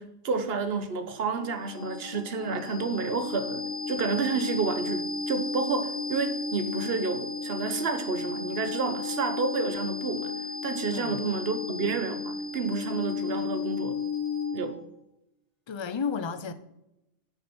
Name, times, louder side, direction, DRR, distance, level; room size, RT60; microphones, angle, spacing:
voice 1, 0.0-10.3 10.6-14.0 14.5-14.8, right 4 dB, 60° right, 1.2 m, -30 dB
sound 1, 0.9-14.8, left 4 dB, 75° left, 1.6 m, -34 dB
voice 2, 15.7-16.5, left 5 dB, 30° left, 0.6 m, -32 dB
9.6 x 6.4 x 6.1 m
omnidirectional pair, 1.2 m